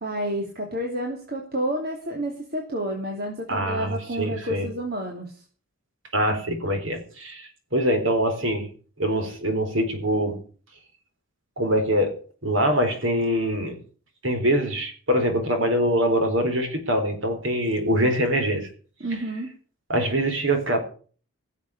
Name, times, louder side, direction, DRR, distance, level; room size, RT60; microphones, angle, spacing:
voice 1, 0.0-5.4 19.0-19.5, right 1 dB, 45° right, 1 dB, 2.9 m, -30 dB
voice 2, 3.5-4.7 6.1-8.7 9.0-10.4 11.6-12.1 12.4-13.8 14.2-18.7 19.9-20.8, equal, 65° right, 6 dB, 4.3 m, -24 dB
17.0 x 7.4 x 8.4 m, 0.43 s
head